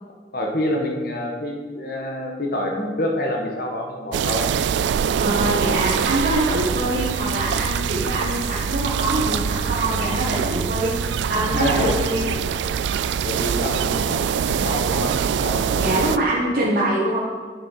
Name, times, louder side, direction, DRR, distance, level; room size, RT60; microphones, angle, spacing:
voice 1, 0.3-4.5 11.5-11.9 13.2-15.1 15.4-16.0 16.4-16.5, left 1 dB, 60° left, 0 dB, 1.6 m, -27 dB
sound 1, 4.1-16.2, right 7 dB, 90° right, 0.3 m, -24 dB
voice 2, 5.1-12.3 15.8-17.2, right 1 dB, 60° right, -6 dB, 1.4 m, -24 dB
8.8 x 6.7 x 4.6 m, 1.5 s
head